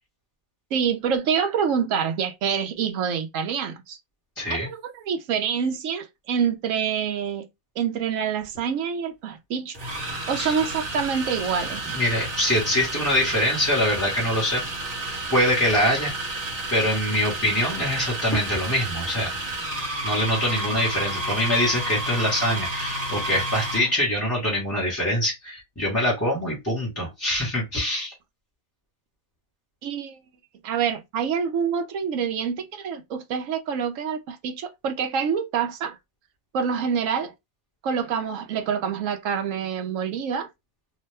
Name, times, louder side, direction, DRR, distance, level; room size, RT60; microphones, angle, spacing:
voice 1, 0.7-4.0 4.5-7.5 7.8-9.8 10.3-11.8 29.8-30.2 30.6-36.0 36.5-37.3 37.8-40.5, right 7 dB, 70° right, 1.0 m, -26 dB
voice 2, 4.4-4.7 10.3-10.6 11.9-14.6 15.3-19.3 20.0-28.1, equal, 15° left, 0.8 m, -24 dB
sound 1, 8.4-8.6 9.7-23.9, right 1 dB, 55° right, 1.3 m, -31 dB
2.8 x 2.2 x 3.1 m
omnidirectional pair, 1.5 m